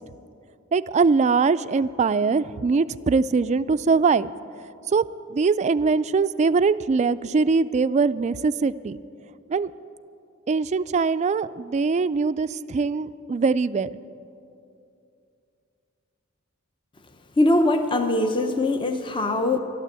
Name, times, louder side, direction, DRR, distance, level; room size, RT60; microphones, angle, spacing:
voice 1, 0.7-4.3 4.9-5.0 5.3-9.0 9.5-9.7 10.5-13.9, right 4 dB, 35° right, 15 dB, 0.3 m, -22 dB
voice 2, 17.4-19.6, left 2 dB, 25° left, 6 dB, 0.6 m, -21 dB
12.5 x 12.0 x 8.2 m, 2.6 s
head